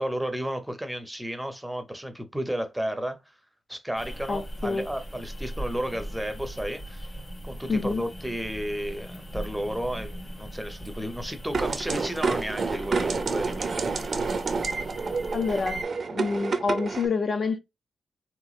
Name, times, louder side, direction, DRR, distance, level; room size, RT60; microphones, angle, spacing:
voice 1, 0.0-3.4 3.7-7.1 7.4-14.3, equal, 5° right, 0.7 m, -33 dB
sound 1, 4.0-15.8, equal, 25° left, 1.1 m, -39 dB
voice 2, 4.3-4.8 7.7-8.0 15.3-15.8 16.1-17.6, left 4 dB, 45° left, 0.5 m, -27 dB
sound 2, 11.5-17.1, right 4 dB, 50° right, 0.5 m, -29 dB
3.4 x 3.0 x 2.3 m
wide cardioid pair, 105°, 0 cm